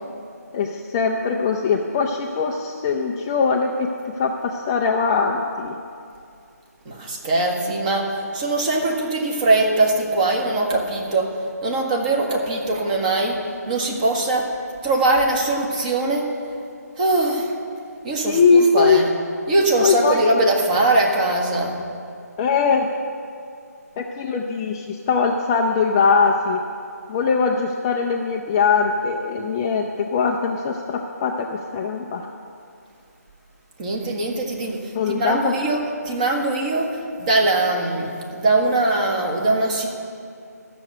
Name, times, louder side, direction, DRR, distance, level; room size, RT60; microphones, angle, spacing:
voice 1, 0.5-5.8 18.3-19.0 19.8-20.2 22.4-22.9 24.0-26.6 27.1-32.3 34.9-35.5, left 5 dB, 15° left, 1 dB, 0.4 m, -21 dB
voice 2, 6.8-11.3 11.6-14.5 14.8-16.3 17.0-17.5 18.0-19.1 19.5-21.8 33.8-39.9, right 2 dB, 25° right, 1 dB, 1.4 m, -21 dB
13.0 x 6.8 x 7.9 m, 2.5 s
figure-of-eight pair, 155°, 9 cm